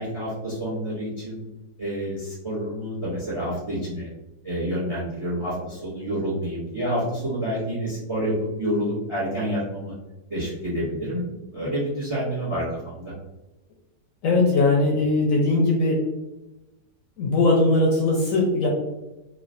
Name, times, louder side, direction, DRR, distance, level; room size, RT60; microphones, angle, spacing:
voice 1, 0.0-1.4 1.8-4.1 4.4-9.9 10.3-13.1, equal, 30° right, -7 dB, 0.6 m, -28 dB
voice 2, 14.2-16.0 17.2-18.7, left 2 dB, 70° left, -1 dB, 0.8 m, -20 dB
3.0 x 2.4 x 2.5 m, 1.0 s
omnidirectional pair, 1.7 m